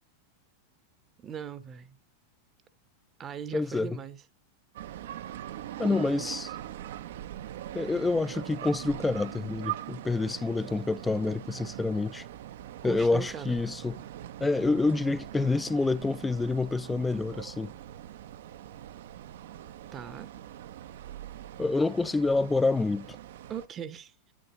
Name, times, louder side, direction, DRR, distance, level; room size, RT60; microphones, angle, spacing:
voice 1, 1.2-2.0 3.2-4.2 5.8-6.0 12.8-13.6 19.9-20.3 23.5-24.1, right 8 dB, 25° right, 0.8 m, -39 dB
voice 2, 3.5-4.0 5.8-6.5 7.7-12.2 12.8-14.0 14.4-17.7 21.6-23.2, left 3 dB, 10° left, 0.4 m, -27 dB
sound 1, 4.8-23.7, right 12 dB, 55° right, 0.5 m, -42 dB
8.5 x 8.5 x 3.0 m
figure-of-eight pair, 90°, 0 cm